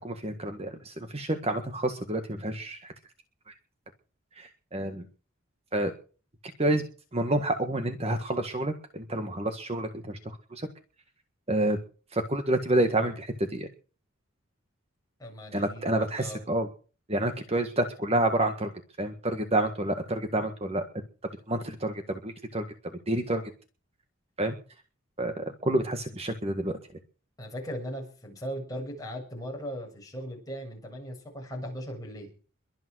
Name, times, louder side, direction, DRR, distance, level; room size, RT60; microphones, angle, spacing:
voice 1, 0.0-2.9 4.4-5.0 5.7-5.9 6.6-6.8 7.1-10.7 11.5-11.8 12.1-13.7 15.5-16.7 17.1-18.7 19.0-20.8 21.5-22.6 23.1-23.4 24.4-24.5 25.2-26.8, right 1 dB, 30° right, 7 dB, 1.6 m, -28 dB
voice 2, 15.2-16.4 27.4-32.3, equal, 15° left, -1 dB, 7.1 m, -38 dB
22.5 x 9.1 x 6.3 m, 0.39 s
head